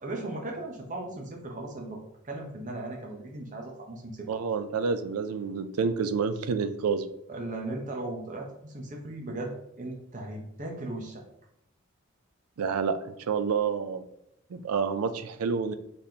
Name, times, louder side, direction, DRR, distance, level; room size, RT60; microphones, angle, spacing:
voice 1, 0.0-4.3 7.3-11.2, right 2 dB, 35° right, 0 dB, 0.8 m, -37 dB
voice 2, 4.3-7.1 12.6-14.0 14.5-15.7, right 5 dB, 90° right, 11 dB, 0.4 m, -28 dB
4.0 x 3.4 x 2.8 m, 0.78 s
head